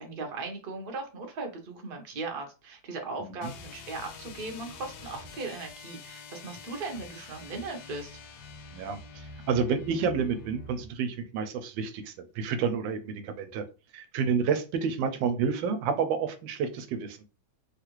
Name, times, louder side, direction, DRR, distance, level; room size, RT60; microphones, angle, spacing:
voice 1, 0.0-8.2, right 3 dB, 45° right, 3 dB, 0.7 m, -38 dB
sound 1, 3.4-10.9, left 4 dB, 70° left, 1.0 m, -46 dB
voice 2, 8.7-13.6 13.9-17.2, right 6 dB, 90° right, 9 dB, 1.3 m, -29 dB
3.4 x 2.4 x 3.0 m, 0.31 s
omnidirectional pair, 2.0 m